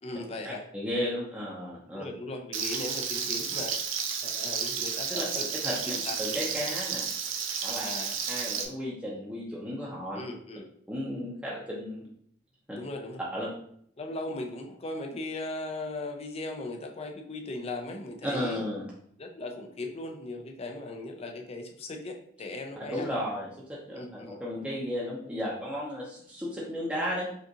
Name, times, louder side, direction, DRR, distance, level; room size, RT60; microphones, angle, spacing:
voice 1, 0.0-0.6 1.9-3.8 4.2-6.6 7.8-8.2 10.2-10.7 12.7-13.2 14.0-18.6 19.2-23.1 23.9-24.4, left 2 dB, 30° left, 3 dB, 0.5 m, -38 dB
voice 2, 0.7-2.0 5.1-5.2 5.6-5.7 6.2-7.1 7.6-7.8 8.3-10.2 10.9-12.1 12.7-12.8 13.3-13.5 18.2-18.8 22.9-27.3, equal, 5° right, -7 dB, 0.7 m, -34 dB
Frying (food), 2.5-8.6, right 6 dB, 80° right, 0.5 m, -32 dB
5.1 x 2.5 x 2.8 m, 0.65 s
head